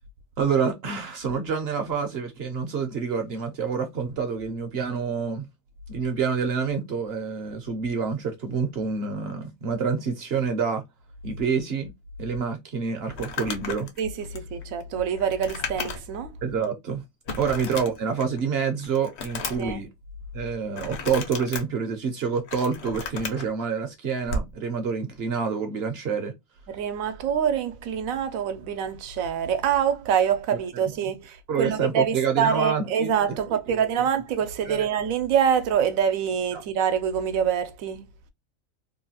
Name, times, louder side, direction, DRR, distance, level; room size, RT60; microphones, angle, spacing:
voice 1, 0.4-5.4 5.9-10.8 11.2-11.9 12.2-13.9 16.4-17.0 17.4-19.9 20.3-26.3 31.5-33.1 33.7-33.9 34.6-34.9 36.5-36.6, right 6 dB, 60° right, 0.8 m, -27 dB
Crumpling crinkling, 13.1-16.2 16.6-16.7 17.3-18.4 18.8-19.7 20.7-21.6 22.2-23.4 24.2-24.5, left 3 dB, 60° left, 0.9 m, -34 dB
voice 2, 14.0-16.4 17.4-17.5 19.6-19.8 26.7-38.1, right 8 dB, 85° right, 1.0 m, -25 dB
3.1 x 2.2 x 2.7 m
omnidirectional pair, 1.4 m